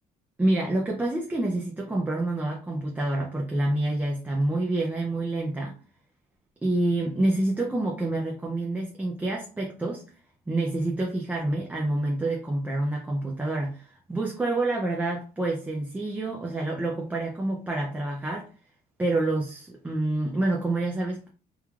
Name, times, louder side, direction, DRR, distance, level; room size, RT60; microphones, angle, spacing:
voice 1, 0.4-5.8 6.6-10.0 10.5-18.5 19.0-21.3, right 2 dB, 10° right, -1 dB, 0.5 m, -27 dB
3.1 x 2.2 x 2.3 m, 0.37 s
cardioid pair, 110°, 17 cm